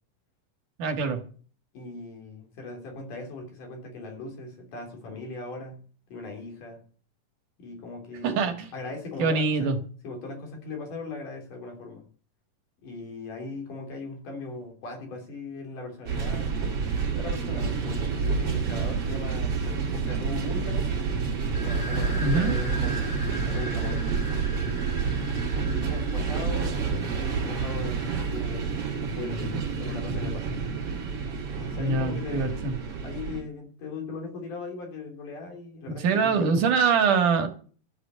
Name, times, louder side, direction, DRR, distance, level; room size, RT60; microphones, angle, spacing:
voice 1, 0.8-1.2 8.2-8.7 9.2-9.8 22.2-22.6 31.8-32.8 36.0-37.5, right 5 dB, 70° right, 6 dB, 3.1 m, -24 dB
voice 2, 1.7-5.8 6.1-6.8 7.6-9.7 10.0-12.0 12.8-16.6 17.1-19.5 20.0-20.9 21.5-24.2 25.5-28.8 29.1-30.6 31.6-32.7 33.0-36.6, left 3 dB, 70° left, 2 dB, 5.0 m, -39 dB
sound 1, 16.1-33.4, right 5 dB, 45° right, 3.1 m, -29 dB
sound 2, 21.5-29.0, equal, 45° left, 3.6 m, -41 dB
13.0 x 8.1 x 8.1 m, 0.43 s
omnidirectional pair, 3.9 m